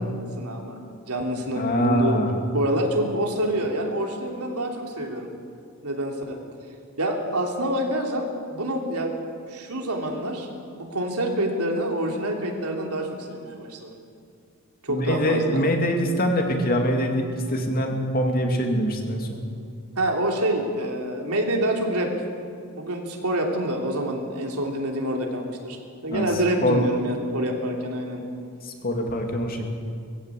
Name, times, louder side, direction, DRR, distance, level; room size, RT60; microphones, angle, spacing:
voice 1, 0.4-0.8 1.1-2.2 2.5-5.3 5.8-6.4 7.0-9.1 9.5-10.5 10.8-14.0 14.8-15.6 20.0-22.1 22.8-25.8 26.0-28.2, right 1 dB, 80° right, 1 dB, 3.2 m, -27 dB
voice 2, 1.5-2.4 14.9-19.3 26.1-26.3 26.6-26.8 28.6-29.7, equal, 40° left, 2 dB, 2.7 m, -24 dB
20.5 x 15.5 x 8.5 m, 2.3 s
head